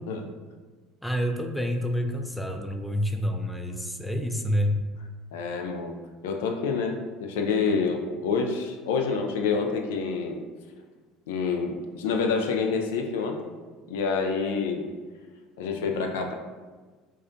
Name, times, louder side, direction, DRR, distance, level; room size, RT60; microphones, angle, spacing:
voice 1, 1.0-4.8, equal, 5° left, 5 dB, 0.4 m, -28 dB
voice 2, 5.3-6.0 6.2-10.4 11.3-13.5 13.9-14.9 15.6-16.3, left 5 dB, 80° left, 4 dB, 0.3 m, -27 dB
4.7 x 2.2 x 2.6 m, 1.4 s
hypercardioid pair, 75°, 0 cm